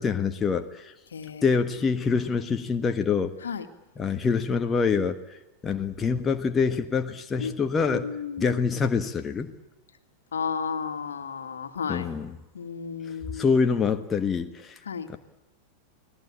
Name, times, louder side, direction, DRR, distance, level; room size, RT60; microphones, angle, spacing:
voice 1, 0.0-0.9 1.4-3.3 4.0-5.2 5.6-8.1 8.4-9.5 11.9-12.3 13.3-14.8 15.1-15.2, left 5 dB, 20° left, 6 dB, 1.5 m, -25 dB
voice 2, 1.1-1.6 2.1-2.2 3.4-3.7 7.4-7.5 7.9-8.6 10.3-12.1 12.5-13.5 14.9-15.1, left 6 dB, 70° left, 7 dB, 2.2 m, -33 dB
29.5 x 20.0 x 8.8 m, 1.0 s
figure-of-eight pair, 90°, 0 cm